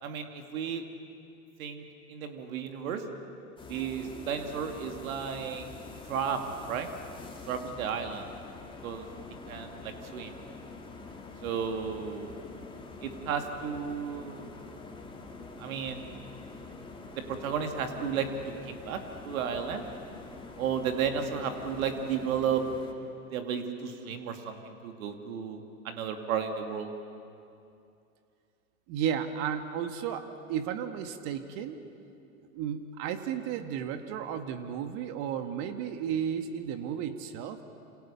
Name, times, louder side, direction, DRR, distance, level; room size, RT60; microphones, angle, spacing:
voice 1, 0.0-0.8 1.6-1.8 2.1-3.0 3.7-5.7 6.1-6.9 7.5-8.3 8.8-9.1 9.5-10.4 11.4-12.3 13.0-14.5 15.6-16.1 17.3-18.3 18.6-19.0 19.2-19.8 20.6-22.6 23.3-26.9, right 7 dB, 65° right, 5 dB, 2.8 m, -33 dB
sound 1, 3.6-22.9, left 3 dB, 10° left, 3.0 m, -46 dB
voice 2, 28.9-31.8 32.5-37.6, right 8 dB, 50° right, 8 dB, 2.0 m, -33 dB
28.0 x 27.5 x 7.1 m, 2.6 s
hypercardioid pair, 100°, 45 cm